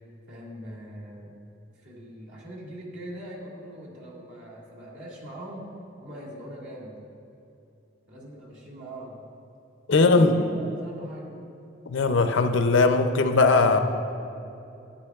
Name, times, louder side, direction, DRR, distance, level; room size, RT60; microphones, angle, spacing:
voice 1, 0.3-1.3 1.8-5.6 6.0-7.0 8.1-9.2 9.9-11.3, equal, 70° right, -5 dB, 2.1 m, -41 dB
voice 2, 9.9-10.3 11.9-13.8, left 3 dB, 75° left, 8 dB, 0.5 m, -19 dB
11.5 x 9.8 x 2.4 m, 2.8 s
head